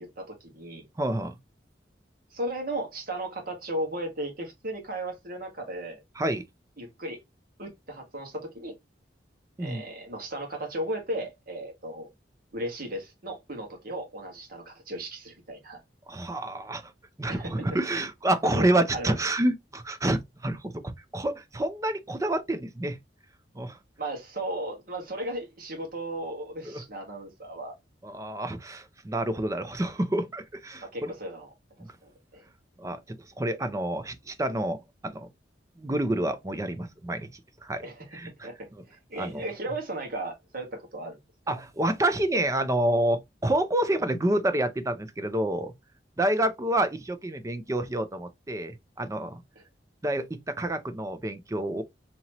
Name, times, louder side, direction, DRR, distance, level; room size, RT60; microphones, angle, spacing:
voice 1, 0.0-0.9 2.3-6.0 6.8-7.2 7.6-8.7 9.6-12.1 12.5-15.8 17.3-17.5 18.5-19.1 24.0-27.7 30.8-31.5 32.0-32.4 37.8-38.1 38.4-41.2 41.5-41.6, right 1 dB, 55° right, 1.6 m, -36 dB
voice 2, 1.0-1.4 6.2-6.4 9.6-9.8 16.1-16.8 17.2-23.0 23.5-23.8 26.7-26.8 28.0-31.1 31.8-31.9 32.8-35.3 35.8-37.3 37.6-37.9 38.1-38.5 39.2-39.4 41.5-45.7 46.2-49.4 50.0-51.8, right 1 dB, 20° right, 0.5 m, -28 dB
4.2 x 2.9 x 2.9 m
head